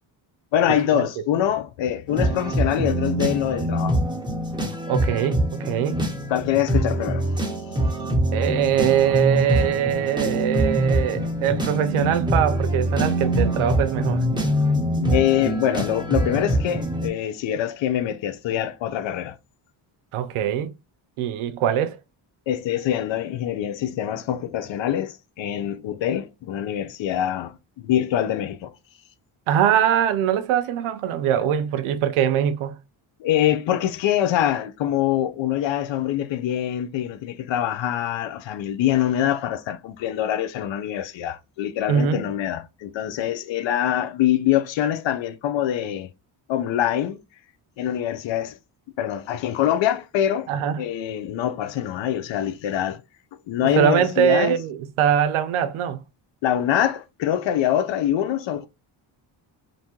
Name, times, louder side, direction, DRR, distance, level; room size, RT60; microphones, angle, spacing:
voice 1, 0.5-4.0 4.4-4.5 6.3-7.3 15.1-19.4 22.5-28.7 33.2-46.1 46.5-47.2 47.8-48.6 49.0-50.5 50.8-53.0 53.5-54.6 56.4-58.7, left 11 dB, 65° left, 0.5 m, -24 dB
sound 1, 2.1-17.1, right 1 dB, 10° right, 1.0 m, -24 dB
voice 2, 4.9-6.0 8.3-14.2 20.1-20.7 21.2-22.0 29.5-32.8 41.9-42.2 50.5-50.8 53.6-56.0, right 9 dB, 80° right, 0.5 m, -22 dB
2.7 x 2.1 x 2.9 m
cardioid pair, 70°, 50 cm